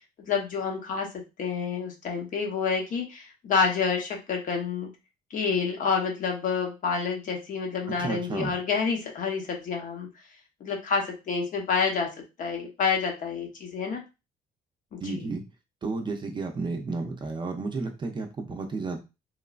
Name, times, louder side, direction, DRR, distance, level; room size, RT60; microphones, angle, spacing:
voice 1, 0.3-1.1 1.4-4.9 5.3-10.1 10.6-12.1 12.4-14.0 14.9-15.3, left 5 dB, 50° left, 2 dB, 0.8 m, -28 dB
voice 2, 8.0-8.5 15.0-15.4 15.8-19.0, right 3 dB, 30° right, 4 dB, 0.5 m, -32 dB
3.1 x 2.1 x 2.4 m, 0.26 s
cardioid pair, 110°, 17 cm